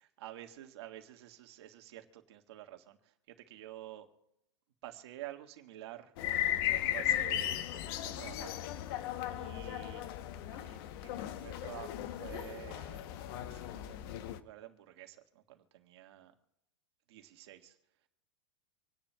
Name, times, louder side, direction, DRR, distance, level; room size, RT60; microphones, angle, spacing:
voice 1, 0.2-4.1 4.8-6.1 6.4-6.5 6.8-9.0 9.3-10.0 10.4-13.0 13.4-16.3 17.1-17.8, right 14 dB, 65° right, 4 dB, 1.7 m, -50 dB
sound 1, 6.2-14.4, left 12 dB, 55° left, 0.9 m, -36 dB
27.0 x 10.5 x 2.3 m, 0.85 s
supercardioid pair, 135°, 15 cm